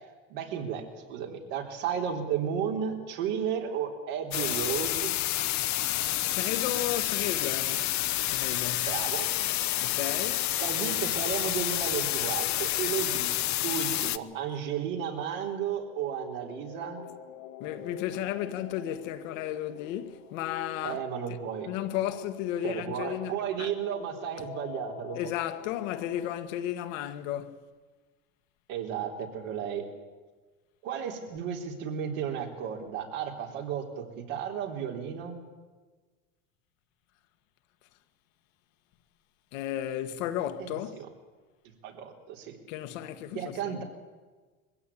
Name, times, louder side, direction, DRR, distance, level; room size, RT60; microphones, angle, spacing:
voice 1, 0.3-0.8 1.1-5.2 8.9-9.3 10.6-13.3 13.6-17.1 20.8-21.7 22.6-25.2 28.7-29.8 30.8-35.4 40.6-41.1 41.8-42.6 43.3-43.8, right 8 dB, 75° right, 3.8 m, -33 dB
sound 1, 4.3-14.2, left 14 dB, 45° left, 0.9 m, -29 dB
voice 2, 6.3-7.9 8.3-8.9 9.8-10.5 17.6-21.0 21.3-21.4 21.6-23.7 25.1-27.6 39.5-41.0 42.7-43.8, left 11 dB, 75° left, 1.6 m, -34 dB
sound 2, 15.8-26.4, left 9 dB, 90° left, 2.1 m, -46 dB
21.5 x 15.5 x 8.5 m
hypercardioid pair, 90°, 40 cm